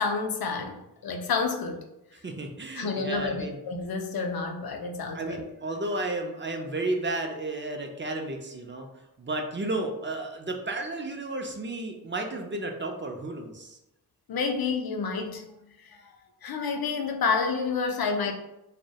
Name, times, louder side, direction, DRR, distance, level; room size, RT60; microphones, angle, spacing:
voice 1, 0.0-1.8 2.7-5.4 14.3-15.5 15.8-16.1 16.4-18.3, left 5 dB, 70° left, 4 dB, 0.5 m, -29 dB
voice 2, 2.2-3.6 5.1-8.9 9.2-13.8, right 2 dB, 30° right, 3 dB, 0.4 m, -32 dB
2.2 x 2.1 x 2.7 m, 0.88 s
wide cardioid pair, 40°, 38 cm